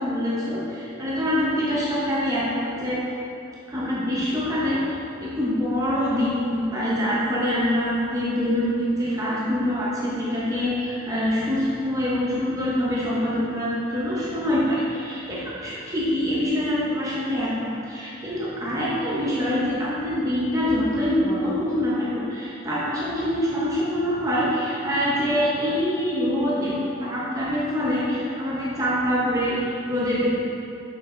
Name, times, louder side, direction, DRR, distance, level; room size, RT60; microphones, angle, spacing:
voice 1, 0.0-3.0 3.7-30.3, equal, 15° right, -7 dB, 0.8 m, -25 dB
6.9 x 5.5 x 3.2 m, 2.6 s
head